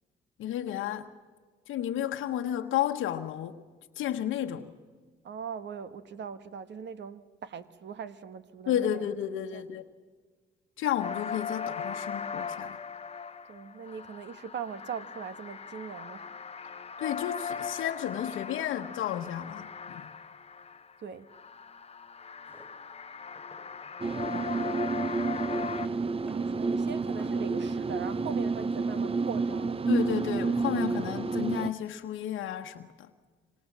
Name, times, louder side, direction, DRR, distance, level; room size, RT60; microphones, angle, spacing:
voice 1, 0.4-1.1 1.7-3.6 4.0-4.7 8.7-9.8 10.8-12.8 17.0-20.1 29.9-33.1, left 11 dB, 85° left, 1.1 m, -32 dB
voice 2, 5.2-8.9 9.5-9.6 13.5-16.3 21.0-21.3 24.2-24.8 26.3-29.8, right 7 dB, 65° right, 1.4 m, -40 dB
sound 1, 11.0-21.0 21.3-25.9, left 6 dB, 30° left, 1.0 m, -39 dB
Drawer open or close, 22.4-22.7 23.3-24.2 24.5-26.0 26.3-26.5 26.8-27.5, equal, 10° right, 6.3 m, -53 dB
sound 2, 24.0-31.7, right 4 dB, 30° right, 0.7 m, -30 dB
26.0 x 26.0 x 7.3 m
cardioid pair, 90°, 20 cm